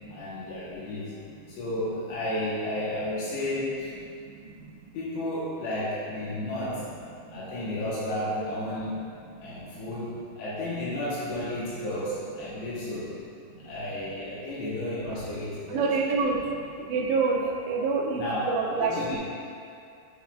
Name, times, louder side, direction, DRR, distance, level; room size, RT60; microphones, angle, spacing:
voice 1, 0.1-1.1 1.6-3.9 4.9-6.8 7.3-9.0 9.4-13.1 13.6-15.9 18.1-19.2, left 1 dB, 70° left, -8 dB, 3.0 m, -32 dB
voice 2, 15.7-16.4 16.9-17.4 17.7-18.2 18.5-19.2, right 4 dB, 75° right, -2 dB, 2.7 m, -26 dB
9.5 x 7.2 x 2.4 m, 2.4 s
omnidirectional pair, 5.3 m